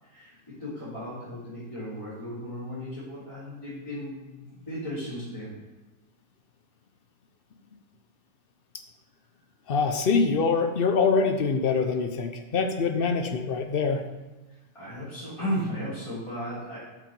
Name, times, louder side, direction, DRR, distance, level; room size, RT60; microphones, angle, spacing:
voice 1, 0.0-5.5 11.8-11.9 14.7-16.8, equal, 15° left, -14 dB, 3.3 m, -35 dB
voice 2, 9.7-14.0, left 5 dB, 65° left, 5 dB, 0.5 m, -24 dB
7.5 x 5.9 x 5.2 m, 1.1 s
omnidirectional pair, 1.9 m